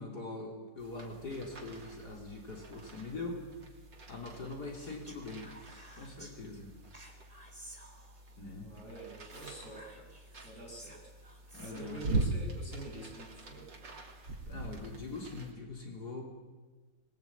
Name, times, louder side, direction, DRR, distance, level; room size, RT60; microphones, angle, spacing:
voice 1, 0.0-3.4 4.1-5.5 6.0-6.7 8.4-8.7 11.5-12.0 14.5-16.2, left 3 dB, 65° left, 1 dB, 4.2 m, -42 dB
sound 1, 0.8-15.5, right 2 dB, 90° right, 3.5 m, -42 dB
Speech, 4.8-6.3 6.9-8.4 9.2-12.0, right 1 dB, 20° right, 3.4 m, -54 dB
voice 2, 8.6-10.1 10.4-11.0 11.6-13.7, right 2 dB, 45° left, 0 dB, 7.5 m, -47 dB
25.0 x 21.0 x 9.0 m, 1.3 s
omnidirectional pair, 1.9 m